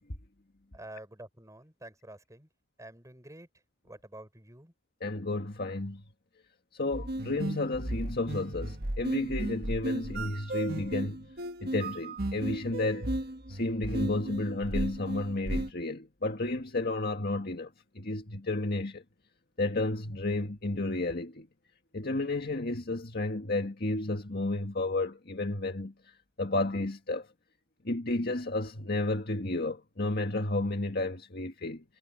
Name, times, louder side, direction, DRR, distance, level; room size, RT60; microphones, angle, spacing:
voice 1, 0.7-2.5 2.8-3.5 3.8-4.7, right 1 dB, 15° right, 7.4 m, -48 dB
voice 2, 5.0-6.0 6.7-11.2 11.6-13.1 13.5-17.7 18.0-19.0 19.6-21.5 21.9-25.9 26.4-27.3 27.9-31.8, left 2 dB, 55° left, 1.8 m, -32 dB
sound 1, 6.9-15.7, right 1 dB, 55° right, 1.6 m, -35 dB
head